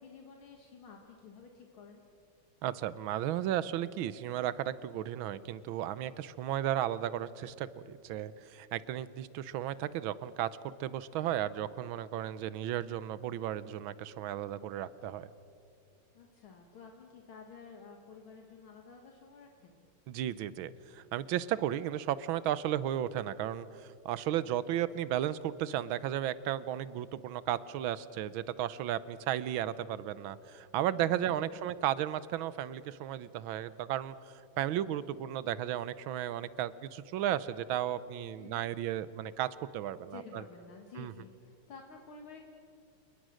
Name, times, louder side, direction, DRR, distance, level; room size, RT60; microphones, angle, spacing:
voice 1, 0.0-2.0 16.1-19.9 30.9-31.3 31.5-31.7 38.4-38.7 40.1-42.4, left 5 dB, 70° left, 2 dB, 2.5 m, -52 dB
voice 2, 2.6-15.3 20.1-40.4 41.0-41.1, right 11 dB, 75° right, 17 dB, 1.5 m, -34 dB
28.5 x 20.0 x 6.4 m, 2.5 s
omnidirectional pair, 2.4 m